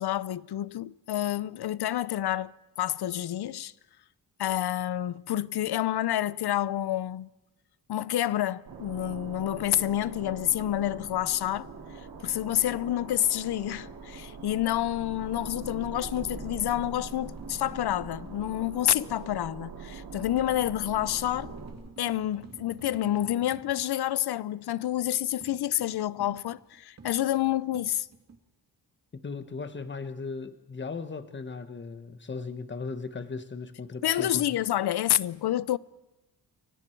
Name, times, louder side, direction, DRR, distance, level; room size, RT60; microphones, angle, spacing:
voice 1, 0.0-3.7 4.4-7.3 7.9-11.7 12.2-21.5 22.0-28.1 34.0-35.8, left 12 dB, 70° left, 0.7 m, -28 dB
sound 1, 8.7-21.7, right 4 dB, 80° right, 4.7 m, -42 dB
sound 2, 16.1-18.9 20.1-23.9 25.4-28.4, right 4 dB, 40° right, 2.3 m, -50 dB
voice 2, 29.1-34.4, left 4 dB, 30° left, 1.3 m, -37 dB
29.5 x 24.0 x 4.6 m
wide cardioid pair, 165°, 40 cm